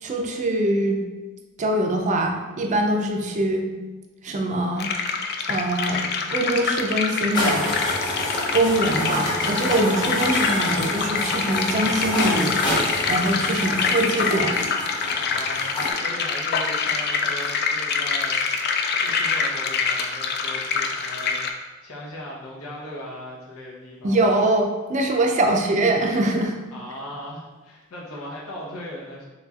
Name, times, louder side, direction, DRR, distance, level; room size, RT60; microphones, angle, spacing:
voice 1, 0.0-1.0 1.6-3.7 4.2-4.9 5.5-7.7 8.5-12.6 13.1-14.6 24.0-26.5, right 1 dB, 35° right, 2 dB, 0.4 m, -23 dB
sound 1, 4.8-21.5, left 5 dB, 50° left, 0.3 m, -25 dB
sound 2, 7.3-15.9, left 1 dB, 20° left, 0.9 m, -28 dB
voice 2, 15.1-18.7 18.9-24.2 26.7-29.2, equal, 90° left, -4 dB, 0.8 m, -38 dB
4.0 x 3.0 x 2.4 m, 1.2 s
head